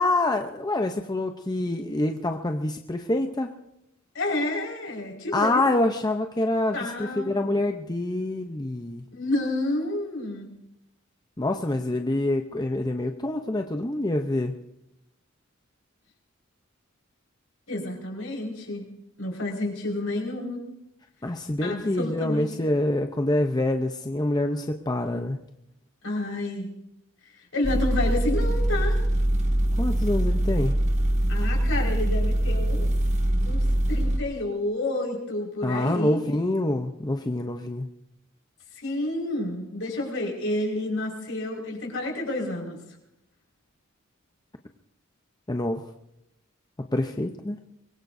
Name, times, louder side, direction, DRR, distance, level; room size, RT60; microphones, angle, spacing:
voice 1, 0.0-3.5 5.3-9.0 11.4-14.5 21.2-25.4 29.8-30.8 35.6-37.9 45.5-45.8 46.9-47.6, left 1 dB, 20° left, 5 dB, 0.7 m, -26 dB
voice 2, 4.1-5.6 6.7-7.6 9.1-10.5 17.7-18.9 19.2-20.6 21.6-22.5 26.0-26.7 27.5-29.0 31.3-32.9 33.4-36.2 38.7-42.8, left 2 dB, 70° left, -1 dB, 5.0 m, -30 dB
sound 1, 27.6-34.2, right 1 dB, 35° right, 1.5 m, -23 dB
24.0 x 21.0 x 2.7 m, 0.83 s
head